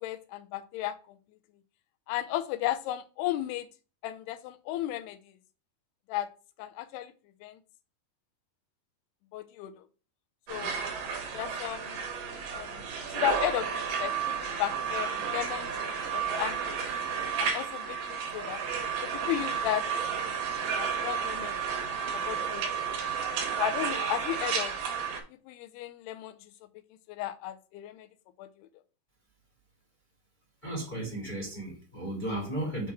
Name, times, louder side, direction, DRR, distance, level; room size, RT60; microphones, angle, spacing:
voice 1, 0.0-1.2 2.1-3.7 4.0-5.3 6.1-6.3 6.6-7.1 7.4-7.6 9.3-9.8 10.5-10.8 11.3-12.0 12.5-16.6 17.4-18.6 19.0-19.8 20.1-20.3 20.7-21.6 22.1-22.8 23.6-24.7 25.3-26.5 27.1-28.1 28.4-28.7, left 13 dB, 85° left, 10 dB, 2.7 m, -34 dB
sound 1, 10.5-25.2, right 6 dB, 70° right, 2.8 m, -32 dB
voice 2, 30.6-32.9, right 1 dB, 20° left, -2 dB, 1.4 m, -34 dB
7.0 x 3.0 x 4.7 m, 0.36 s
omnidirectional pair, 4.7 m